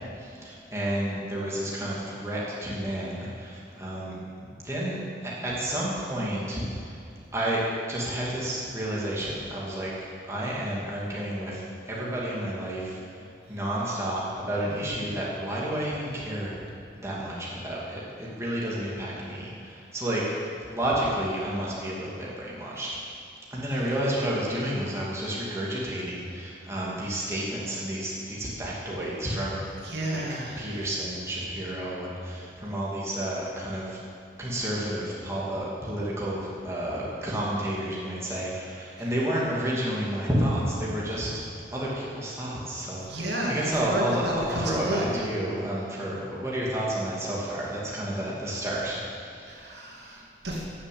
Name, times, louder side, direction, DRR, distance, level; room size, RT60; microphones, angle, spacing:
voice 1, 0.0-7.0 7.3-7.6 7.9-16.6 16.9-22.9 23.5-29.7 30.1-30.2 30.6-34.0 34.4-49.7 50.0-50.2, right 1 dB, 15° right, -6 dB, 2.6 m, -31 dB
voice 2, 29.8-30.8 39.0-39.1 43.0-45.2 49.5-50.7, right 1 dB, 75° right, -2 dB, 2.6 m, -32 dB
15.0 x 7.2 x 8.6 m, 2.5 s
head